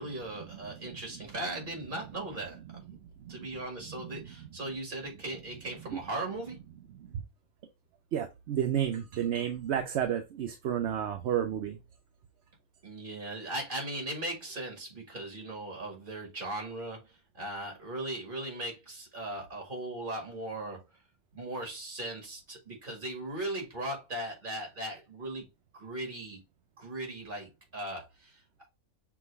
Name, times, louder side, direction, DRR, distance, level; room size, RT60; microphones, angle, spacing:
voice 1, 0.0-2.9 3.3-6.6 12.8-20.8 21.3-25.5 25.7-26.4 26.8-28.7, right 1 dB, 35° right, 1.9 m, -38 dB
voice 2, 3.9-4.2 5.9-6.0 8.1-11.8, right 9 dB, 60° right, 0.8 m, -31 dB
5.9 x 2.3 x 3.4 m
omnidirectional pair, 1.5 m